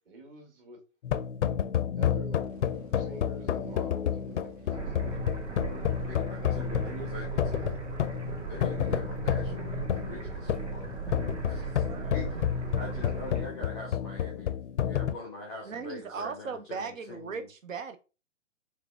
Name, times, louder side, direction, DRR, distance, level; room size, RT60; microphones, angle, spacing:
voice 1, 0.1-0.8 2.0-2.4 3.0-4.9 6.4-7.4, right 2 dB, 45° right, 3 dB, 1.8 m, -45 dB
sound 1, 1.0-15.1, left 9 dB, 65° left, 0.5 m, -30 dB
sound 2, 2.4-14.1, right 6 dB, 30° right, 0.6 m, -55 dB
sound 3, 4.7-13.4, right 5 dB, 65° right, 1.8 m, -38 dB
voice 2, 5.7-7.8 8.5-10.9 11.4-12.4 12.8-14.6 14.8-17.5, left 3 dB, ahead, -7 dB, 0.3 m, -43 dB
voice 3, 11.8-12.2 15.6-18.0, right 5 dB, 80° right, 9 dB, 0.6 m, -38 dB
4.6 x 3.4 x 3.3 m, 0.32 s
figure-of-eight pair, 125°, 38 cm